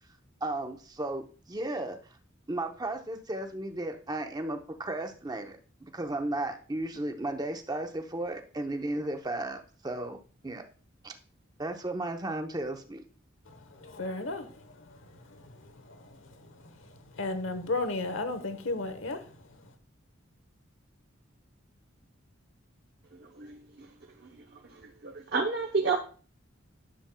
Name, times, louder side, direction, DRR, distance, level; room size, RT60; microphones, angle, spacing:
voice 1, 0.4-2.0 2.5-10.2 10.4-10.6 11.0-11.1 11.6-13.0, right 2 dB, 20° right, 5 dB, 0.7 m, -34 dB
voice 2, 13.5-19.7, left 2 dB, 75° left, 9 dB, 1.0 m, -36 dB
voice 3, 25.0-26.0, right 4 dB, 55° right, 1 dB, 0.8 m, -28 dB
10.0 x 7.0 x 2.2 m, 0.38 s
head